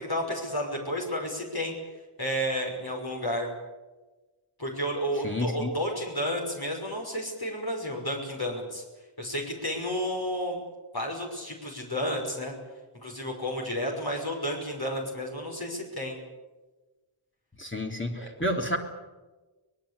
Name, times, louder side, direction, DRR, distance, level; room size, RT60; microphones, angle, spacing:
voice 1, 0.0-1.7 2.2-3.5 4.6-8.8 9.2-10.6 10.9-12.5 13.0-16.2 18.2-18.3, equal, 50° left, 0 dB, 5.8 m, -31 dB
voice 2, 5.2-5.7 17.6-18.8, left 1 dB, 25° left, 1 dB, 3.1 m, -30 dB
24.5 x 20.5 x 8.5 m, 1.2 s
wide cardioid pair, 60°, 49 cm